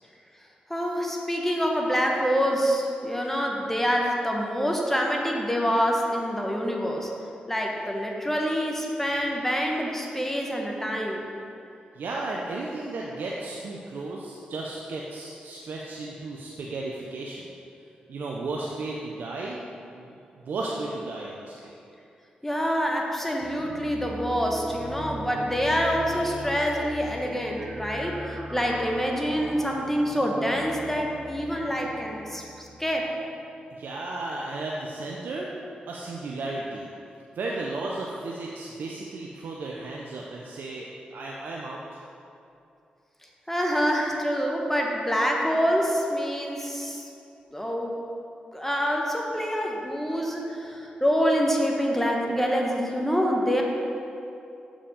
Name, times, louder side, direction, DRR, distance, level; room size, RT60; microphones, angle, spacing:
voice 1, 0.7-7.1 7.5-11.3 22.4-33.1 43.5-47.1 47.5-48.0 48.5-53.6, equal, 10° left, 0 dB, 1.2 m, -26 dB
voice 2, 11.9-17.5 18.1-20.1 20.4-21.7 33.7-35.5 35.9-36.9 37.3-42.0, right 2 dB, 70° right, -3 dB, 0.6 m, -34 dB
sound 1, 23.4-33.6, right 1 dB, 40° right, 0.7 m, -40 dB
7.0 x 5.2 x 5.0 m, 2.7 s
supercardioid pair, 45°, 3 cm